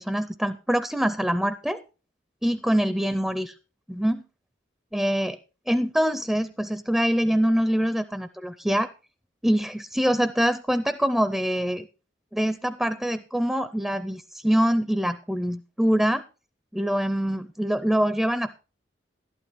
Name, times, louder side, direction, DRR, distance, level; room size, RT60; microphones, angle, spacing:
voice 1, 0.0-1.8 2.4-3.5 3.9-4.2 4.9-5.4 5.7-8.9 9.4-11.9 12.3-16.2 16.7-18.5, equal, ahead, 12 dB, 0.4 m, -24 dB
12.5 x 11.5 x 3.4 m, 0.33 s
head